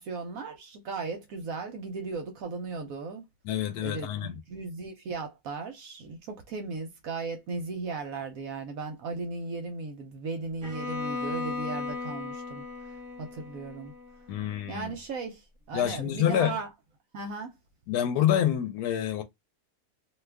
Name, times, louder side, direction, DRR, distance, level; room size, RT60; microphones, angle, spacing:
voice 1, 0.0-3.2 3.8-12.6 13.2-13.9 14.7-16.7 17.1-17.5, right 4 dB, 70° right, 1.0 m, -36 dB
voice 2, 3.4-4.3 14.3-15.0 15.7-16.6 17.9-19.2, left 10 dB, 85° left, 1.1 m, -27 dB
Bowed string instrument, 10.6-14.6, left 4 dB, 25° right, 1.1 m, -36 dB
2.7 x 2.3 x 3.3 m
omnidirectional pair, 1.6 m